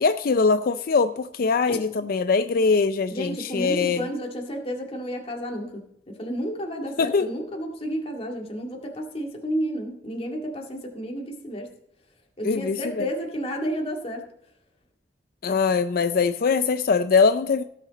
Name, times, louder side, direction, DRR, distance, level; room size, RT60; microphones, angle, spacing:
voice 1, 0.0-4.1 7.0-7.3 12.4-13.1 15.4-17.6, left 4 dB, 55° left, 11 dB, 0.4 m, -22 dB
voice 2, 3.1-5.7 6.2-11.7 12.4-14.2, equal, 35° left, 1 dB, 2.1 m, -31 dB
17.5 x 6.6 x 4.1 m, 0.74 s
head